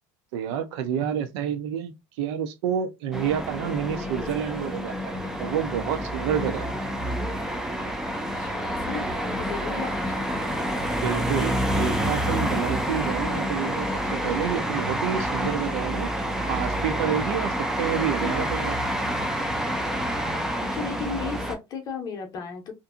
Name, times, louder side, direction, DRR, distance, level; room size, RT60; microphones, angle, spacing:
voice 1, 0.3-5.1 5.4-6.7 11.0-16.1 16.5-18.8, right 8 dB, 75° right, 0.6 m, -29 dB
sound 1, 3.1-21.5, equal, 5° right, 0.3 m, -28 dB
voice 2, 6.3-7.1 8.2-10.5 20.7-22.7, left 5 dB, 25° left, 0.7 m, -36 dB
2.6 x 2.5 x 2.4 m
cardioid pair, 175°, 14 cm